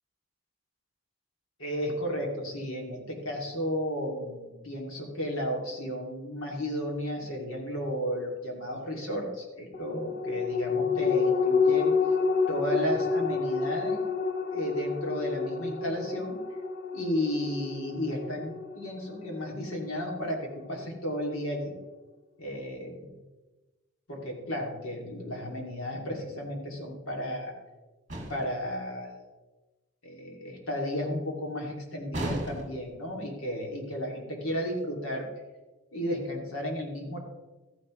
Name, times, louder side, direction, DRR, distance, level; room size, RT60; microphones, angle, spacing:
voice 1, 1.6-11.9 12.5-14.0 14.5-16.4 16.9-21.7 22.4-23.1 24.1-27.5 28.3-29.2 30.0-35.3 35.9-37.2, equal, 85° left, 0 dB, 2.6 m, -33 dB
sound 1, 9.7-20.5 20.9-21.0, left 5 dB, 40° left, 0.6 m, -29 dB
sound 2, 28.1-28.6 32.1-32.9, right 1 dB, 35° right, 2.0 m, -35 dB
13.5 x 10.0 x 3.2 m, 1.2 s
head